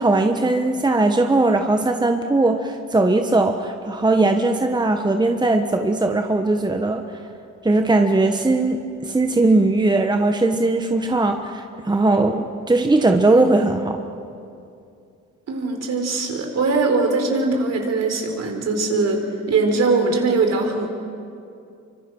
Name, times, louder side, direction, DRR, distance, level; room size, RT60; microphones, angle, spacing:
voice 1, 0.0-7.0 7.6-14.0, right 2 dB, 15° right, 5 dB, 1.3 m, -19 dB
voice 2, 15.5-19.2 19.5-20.9, right 3 dB, 60° right, 3 dB, 4.5 m, -21 dB
26.0 x 24.5 x 6.3 m, 2.5 s
cardioid pair, 90°, 30 cm